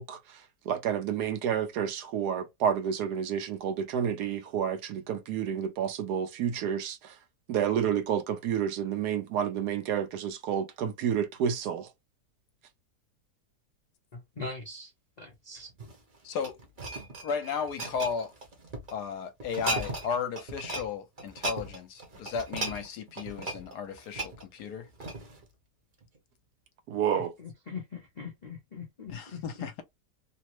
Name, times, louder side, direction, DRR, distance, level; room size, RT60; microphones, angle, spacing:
voice 1, 0.0-7.2 7.5-11.9 26.9-27.3, right 8 dB, 75° right, 1.2 m, -30 dB
voice 2, 14.1-14.9 15.2-15.7 27.1-29.8, left 4 dB, 55° left, 0.4 m, -42 dB
sound 1, 15.7-18.9 19.4-20.1 20.4-20.9 21.2-25.4 26.0-26.2, right 2 dB, 35° right, 0.9 m, -37 dB
voice 3, 16.2-16.6 17.2-18.3 18.9-24.9 29.1-29.8, left 6 dB, 75° left, 1.2 m, -34 dB
3.2 x 2.0 x 2.9 m
omnidirectional pair, 1.8 m